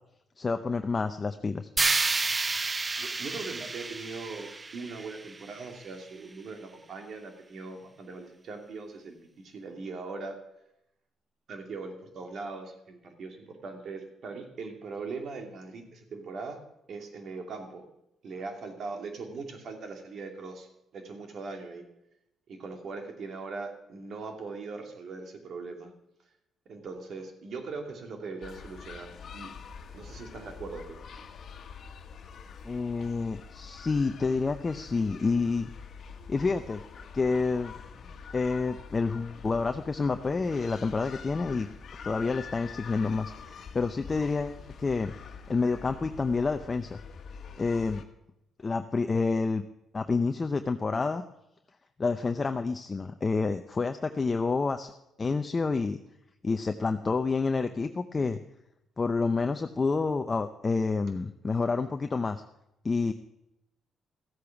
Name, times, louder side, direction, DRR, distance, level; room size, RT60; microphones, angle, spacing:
voice 1, 0.4-1.7 32.6-35.7 36.3-36.8 37.1-37.7 38.3-41.7 42.0-45.1 45.5-47.0 47.6-48.0 48.6-49.6 49.9-51.2 52.0-54.9 55.2-56.0 56.4-58.4 59.0-62.4 62.8-63.1, left 4 dB, 30° left, 7 dB, 0.7 m, -28 dB
sound 1, 1.8-5.8, right 3 dB, 25° right, 0.5 m, -30 dB
voice 2, 3.0-10.4 11.5-16.6 16.9-17.8 18.2-20.7 20.9-21.8 22.5-25.9 26.7-29.5 29.9-31.0, right 4 dB, 60° right, 3 dB, 2.6 m, -40 dB
sound 2, 28.4-48.0, left 6 dB, 60° left, 1.4 m, -45 dB
14.5 x 8.3 x 6.0 m, 0.83 s
cardioid pair, 90°, 0 cm